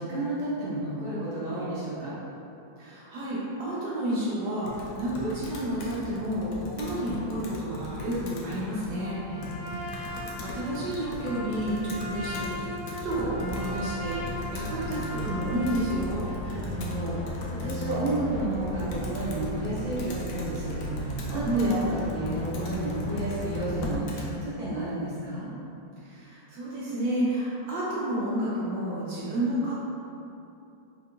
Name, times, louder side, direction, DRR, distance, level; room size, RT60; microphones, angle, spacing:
voice 1, 0.0-2.1 9.3-9.8 16.4-25.5, right 1 dB, 35° right, -10 dB, 0.9 m, -32 dB
voice 2, 2.8-9.2 9.6-16.3 21.4-21.9 26.0-29.7, right 1 dB, 70° right, -8 dB, 1.3 m, -30 dB
Computer keyboard, 4.6-24.3, left 2 dB, 75° left, 1.3 m, -39 dB
Trumpet, 8.9-16.2, left 2 dB, 55° left, 0.8 m, -39 dB
sound 1, 13.0-23.9, equal, 20° right, 1.3 m, -36 dB
4.6 x 3.0 x 2.3 m, 2.7 s
omnidirectional pair, 2.1 m